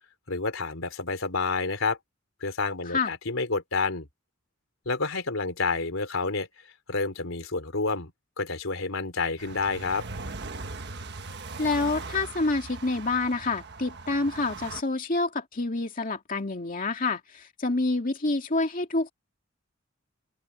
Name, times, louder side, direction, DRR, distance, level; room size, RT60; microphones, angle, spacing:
voice 1, 0.3-2.0 2.4-4.1 4.8-6.5 6.9-8.1 8.4-10.0, left 3 dB, 85° left, 3.4 m, -29 dB
sound 1, 9.4-14.8, right 3 dB, 60° right, 1.4 m, -39 dB
voice 2, 11.6-19.1, left 3 dB, 45° left, 2.4 m, -27 dB
open air
head